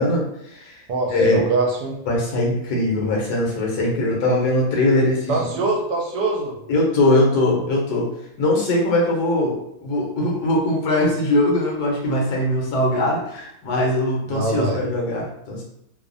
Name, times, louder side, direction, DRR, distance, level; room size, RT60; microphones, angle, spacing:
voice 1, 0.0-0.8 1.1-1.4 2.1-5.6 6.7-8.1 8.4-15.6, left 1 dB, 75° left, -1 dB, 1.2 m, -21 dB
voice 2, 0.9-2.0 5.3-6.6 14.3-14.8, right 3 dB, 85° right, 0 dB, 1.2 m, -23 dB
3.0 x 2.0 x 2.5 m, 0.79 s
omnidirectional pair, 1.7 m